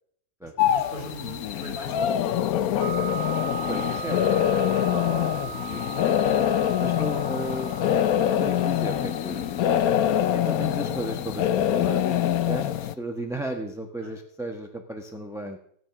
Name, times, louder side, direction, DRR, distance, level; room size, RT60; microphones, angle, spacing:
voice 1, 0.4-3.2 13.9-14.1, right 2 dB, 25° left, -1 dB, 5.3 m, -43 dB
sound 1, 0.6-12.9, left 10 dB, 65° left, 1.0 m, -24 dB
sound 2, 2.8-11.6, right 7 dB, 45° right, 2.0 m, -39 dB
voice 2, 3.7-5.8 6.1-6.4 6.8-7.7 8.4-9.5 10.3-15.6, right 1 dB, ahead, 3 dB, 0.9 m, -35 dB
16.5 x 9.3 x 6.0 m, 0.65 s
omnidirectional pair, 2.0 m